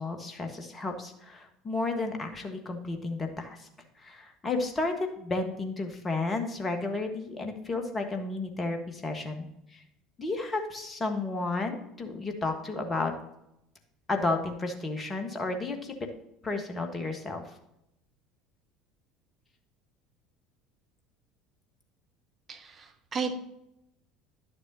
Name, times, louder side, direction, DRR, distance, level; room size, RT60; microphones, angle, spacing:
voice 1, 0.0-3.7 4.0-9.5 9.7-9.8 10.2-13.1 14.1-15.9 16.4-17.4, left 3 dB, 20° left, 5 dB, 1.5 m, -32 dB
voice 2, 22.5-23.3, right 5 dB, 30° right, 4 dB, 1.2 m, -34 dB
11.0 x 6.9 x 2.8 m, 0.82 s
figure-of-eight pair, 65°, 0 cm